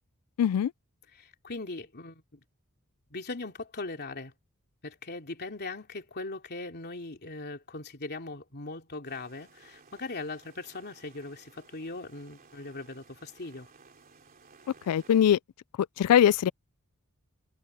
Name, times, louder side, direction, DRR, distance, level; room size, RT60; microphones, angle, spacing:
voice 1, 0.4-0.7 14.9-15.4 16.0-16.5, left 9 dB, 90° left, 0.3 m, -21 dB
voice 2, 1.1-2.4 3.1-4.3 4.8-13.7, left 3 dB, 50° left, 3.2 m, -40 dB
sound 1, 9.1-15.2, right 4 dB, 40° right, 3.3 m, -57 dB
head